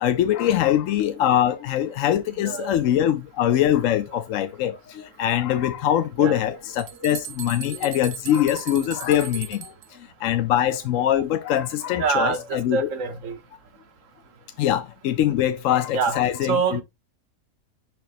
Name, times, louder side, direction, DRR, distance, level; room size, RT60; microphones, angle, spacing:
voice 1, 0.0-9.6 10.2-12.9 14.6-16.8, left 11 dB, 70° left, 0.9 m, -23 dB
voice 2, 2.3-2.9 3.4-3.7 6.2-6.6 6.9-7.1 12.0-13.4 15.7-16.8, right 5 dB, 60° right, 1.3 m, -27 dB
sound 1, 6.4-6.5 6.7-9.9, right 11 dB, 80° right, 0.5 m, -37 dB
10.5 x 3.5 x 2.6 m
omnidirectional pair, 1.6 m